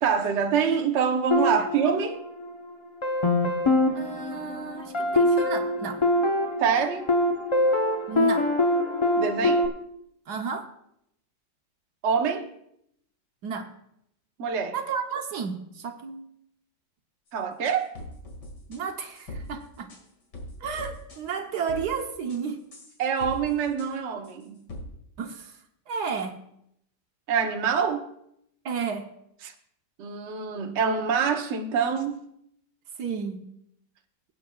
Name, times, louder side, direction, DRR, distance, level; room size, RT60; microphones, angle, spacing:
voice 1, 0.0-2.2 6.6-7.1 9.2-9.7 12.0-12.5 14.4-14.8 17.3-17.9 23.0-24.7 27.3-28.1 29.4-29.5 30.0-32.2, right 6 dB, 50° right, 1.0 m, -25 dB
sound 1, 1.3-2.6 3.0-9.7, left 1 dB, 30° left, 0.5 m, -24 dB
voice 2, 3.9-6.0 8.1-8.5 10.3-10.7 13.4-13.7 14.7-16.3 18.7-19.9 20.6-22.6 25.2-26.4 28.6-29.1 33.0-33.4, right 6 dB, 65° right, 1.4 m, -32 dB
sound 2, 17.7-18.8 19.2-19.5 19.9-20.0 20.3-21.2 21.5-22.0 22.3-22.4 22.7-23.5 23.8-23.9 24.2-24.3 24.7-24.8, left 1 dB, 65° left, 2.6 m, -40 dB
24.0 x 8.6 x 2.3 m
omnidirectional pair, 2.0 m